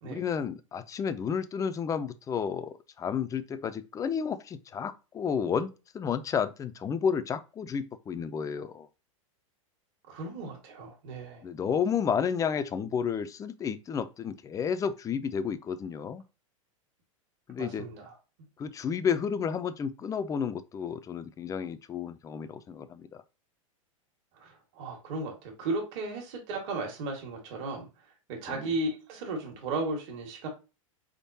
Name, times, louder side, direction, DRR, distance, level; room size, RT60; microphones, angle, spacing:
voice 1, 0.0-8.9 11.4-16.2 17.5-17.8 18.6-23.2 28.5-28.7, left 7 dB, 20° left, 0.4 m, -31 dB
voice 2, 10.1-11.4 17.6-18.1 24.4-27.9 28.3-30.5, right 2 dB, 55° right, 1.6 m, -35 dB
3.8 x 3.6 x 2.7 m
hypercardioid pair, 105°, 17 cm